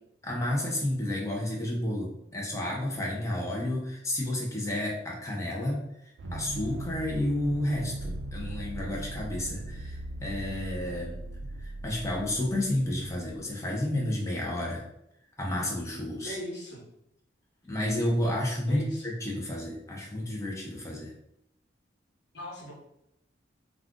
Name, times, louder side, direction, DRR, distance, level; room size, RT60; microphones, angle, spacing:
voice 1, 0.2-5.8 6.3-11.2 11.6-14.8 15.4-16.4 17.6-21.1, left 1 dB, 15° left, -2 dB, 0.6 m, -31 dB
sound 1, 6.2-13.4, right 1 dB, 65° right, 0.4 m, -39 dB
voice 2, 16.2-16.8 18.7-19.0 22.3-22.7, equal, 65° left, -4 dB, 1.2 m, -38 dB
2.4 x 2.4 x 3.6 m, 0.80 s
head